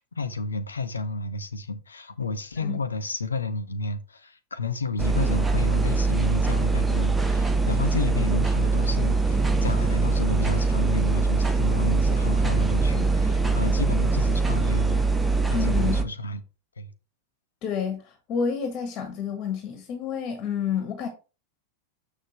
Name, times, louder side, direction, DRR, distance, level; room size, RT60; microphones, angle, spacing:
voice 1, 0.0-15.0 15.5-16.4 16.8-16.9, left 2 dB, 75° left, 0.7 m, -30 dB
sound 1, 5.0-16.0, right 3 dB, 10° right, 0.9 m, -23 dB
voice 2, 15.5-16.1 17.6-21.1, left 7 dB, 35° left, 1.5 m, -29 dB
7.2 x 6.6 x 3.1 m
figure-of-eight pair, 90°, 0 cm